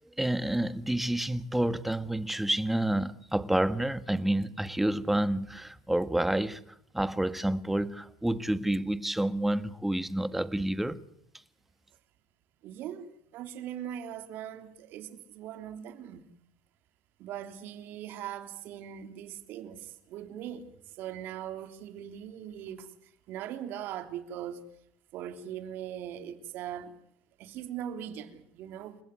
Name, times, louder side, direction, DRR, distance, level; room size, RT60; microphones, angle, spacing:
voice 1, 0.2-6.6 6.9-11.0, right 1 dB, 5° right, 1.6 m, -29 dB
voice 2, 12.6-16.2 17.2-20.7 21.0-22.9 23.3-24.6 25.1-26.9 27.4-29.0, right 10 dB, 65° right, 3.2 m, -40 dB
29.5 x 16.0 x 9.7 m
supercardioid pair, 105°, 4 cm